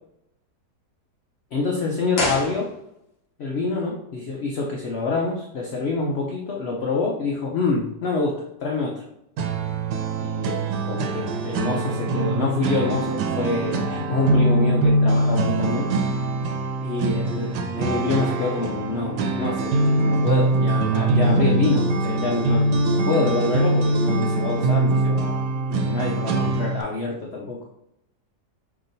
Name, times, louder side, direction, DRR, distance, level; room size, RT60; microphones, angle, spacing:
voice 1, 1.5-2.7 3.4-9.0 10.2-15.9 16.8-25.4 25.7-27.6, left 3 dB, 75° left, -2 dB, 0.6 m, -26 dB
sound 1, 2.1-3.2 3.5-3.6, left 1 dB, 45° left, 0.9 m, -28 dB
sound 2, 9.4-26.8, right 2 dB, 80° right, 1.2 m, -23 dB
5.5 x 2.9 x 2.6 m, 0.81 s
omnidirectional pair, 1.8 m